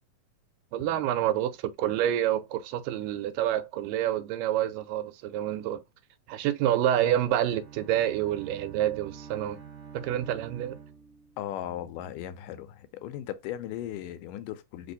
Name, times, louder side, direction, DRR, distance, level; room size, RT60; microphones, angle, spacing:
voice 1, 0.7-5.8 6.3-9.6 9.9-10.8, right 11 dB, 85° right, 2.2 m, -28 dB
Bowed string instrument, 7.0-11.6, right 7 dB, 55° right, 1.8 m, -47 dB
voice 2, 11.4-14.9, left 11 dB, 85° left, 2.2 m, -37 dB
5.2 x 2.4 x 3.9 m
omnidirectional pair, 3.8 m